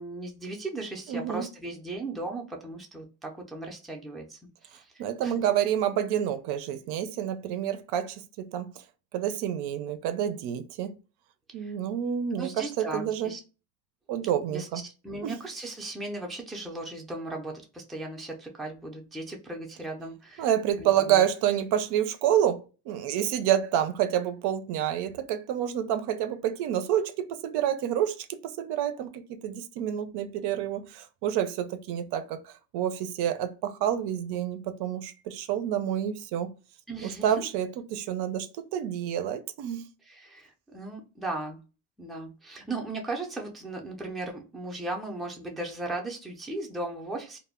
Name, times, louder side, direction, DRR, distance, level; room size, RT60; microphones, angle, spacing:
voice 1, 0.0-5.3 11.5-11.7 12.3-13.4 14.5-14.7 15.0-21.2 36.9-37.5 40.0-41.6 42.0-47.4, right 2 dB, ahead, 0.4 m, -37 dB
voice 2, 1.1-1.4 5.0-8.7 9.1-10.9 11.5-13.3 14.1-14.8 15.2-15.3 20.4-36.5 37.0-39.8, right 10 dB, 75° right, 0.5 m, -28 dB
2.1 x 2.0 x 3.5 m
cardioid pair, 115°, 40 cm